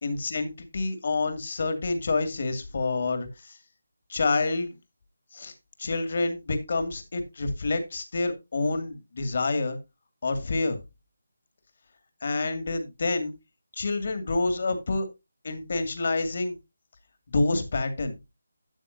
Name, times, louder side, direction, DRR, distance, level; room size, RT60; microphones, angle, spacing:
voice 1, 0.0-3.6 4.1-4.7 5.3-5.5 5.8-9.8 10.2-10.8 12.2-13.3 13.7-15.1 15.4-16.6 17.3-18.2, left 3 dB, 50° left, 9 dB, 2.3 m, -28 dB
12.5 x 9.1 x 2.7 m, 0.23 s
figure-of-eight pair, 170°, 0 cm